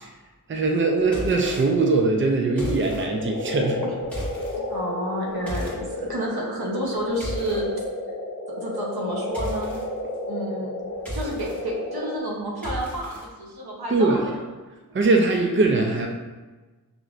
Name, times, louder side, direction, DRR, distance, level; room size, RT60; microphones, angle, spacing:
voice 1, 0.5-3.8 13.9-14.2 14.9-16.1, right 3 dB, 35° right, 2 dB, 0.5 m, -21 dB
sound 1, 0.8-12.2, left 1 dB, 45° left, 0.7 m, -33 dB
sound 2, 1.0-1.6 2.5-3.0 4.0-4.6 5.5-5.8 6.8-7.6 9.3-9.8 10.9-11.6 12.6-13.2, equal, 5° left, 1.4 m, -34 dB
voice 2, 4.7-7.8 8.5-9.8 10.3-10.7 11.1-14.4, right 1 dB, 85° right, -2 dB, 0.8 m, -30 dB
5.2 x 3.0 x 2.4 m, 1.2 s
wide cardioid pair, 50°, 37 cm